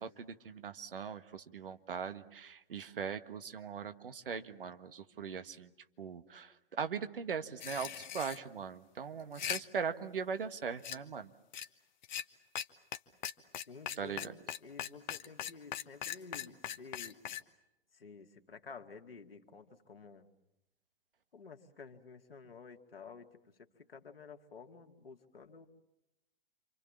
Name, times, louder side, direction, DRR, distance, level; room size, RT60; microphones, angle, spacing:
voice 1, 0.0-5.7 6.0-11.3 14.0-14.3, right 6 dB, 65° right, 9 dB, 1.6 m, -40 dB
sound 1, 7.6-8.4 9.2-9.6 10.8-11.0 11.5-11.7 12.0-12.2 12.6-12.7 12.9-13.0 13.2-17.4, left 10 dB, 50° left, 1.2 m, -39 dB
voice 2, 13.7-17.2 17.9-20.3 21.3-23.3 23.6-25.7, left 5 dB, 75° left, 4 dB, 2.2 m, -52 dB
28.5 x 26.0 x 7.3 m, 0.89 s
figure-of-eight pair, 110°, 30 cm